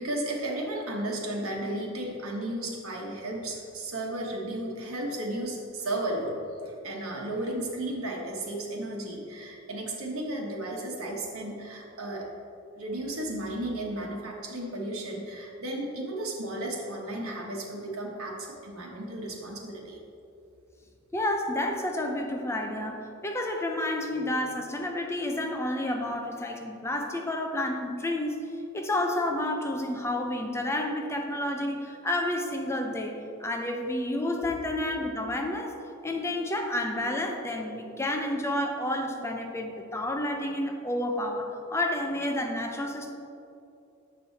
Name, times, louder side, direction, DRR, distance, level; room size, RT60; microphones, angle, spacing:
voice 1, 0.0-12.3 12.8-20.0, right 1 dB, 85° right, -1 dB, 1.2 m, -34 dB
voice 2, 21.1-28.4 28.7-35.8 36.0-43.1, left 1 dB, 15° left, 3 dB, 0.5 m, -30 dB
7.5 x 5.4 x 4.1 m, 2.7 s
head